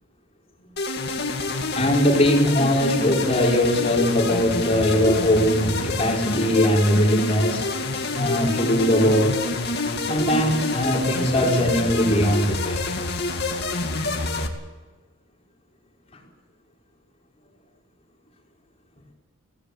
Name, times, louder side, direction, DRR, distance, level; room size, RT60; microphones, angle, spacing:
sound 1, 0.8-14.5, left 2 dB, 50° left, 2.6 m, -27 dB
voice 1, 1.7-7.7 8.2-9.4 10.1-12.9, equal, 30° left, -1 dB, 5.2 m, -20 dB
22.5 x 18.5 x 8.4 m, 1.3 s
head